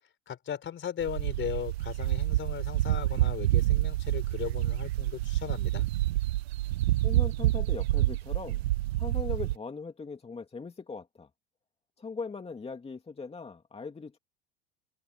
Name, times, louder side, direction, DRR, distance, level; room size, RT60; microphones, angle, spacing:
voice 1, 0.3-5.9, left 9 dB, 35° left, 4.5 m, -37 dB
sound 1, 1.0-9.6, right 16 dB, 75° right, 0.8 m, -28 dB
voice 2, 7.0-8.6 9.0-11.3 12.0-14.2, left 4 dB, 20° left, 2.4 m, -40 dB
open air
hypercardioid pair, 80°, 32 cm